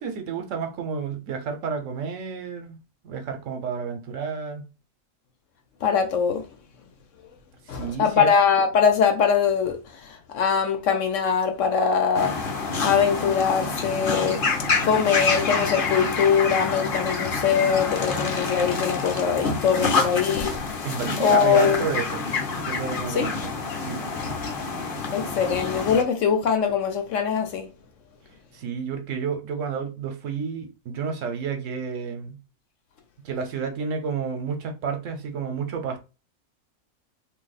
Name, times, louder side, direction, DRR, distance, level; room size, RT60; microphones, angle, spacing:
voice 1, 0.0-2.8 3.0-4.7 7.7-8.3 20.8-22.3 22.7-23.5 23.8-24.1 28.5-32.4 33.2-36.0, right 6 dB, 70° right, 1.1 m, -30 dB
voice 2, 5.8-6.4 7.7-12.3 12.8-14.5 14.8-20.9 21.2-21.8 23.1-23.3 24.6-24.7 25.0-27.7, left 7 dB, 70° left, 1.0 m, -22 dB
sound 1, 12.1-26.0, left 4 dB, 45° left, 0.9 m, -27 dB
2.8 x 2.7 x 4.0 m
omnidirectional pair, 1.4 m